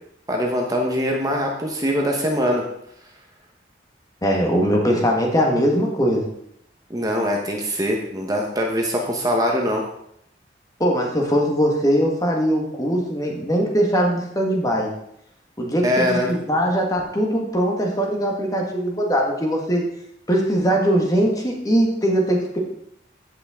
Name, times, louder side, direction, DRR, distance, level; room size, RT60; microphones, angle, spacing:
voice 1, 0.3-2.6 6.9-9.8 15.8-16.3, equal, 20° right, 0 dB, 1.2 m, -22 dB
voice 2, 4.2-6.3 10.8-14.9 15.6-19.8 20.3-22.6, equal, 20° left, 0 dB, 1.7 m, -21 dB
15.5 x 5.8 x 3.7 m, 0.74 s
head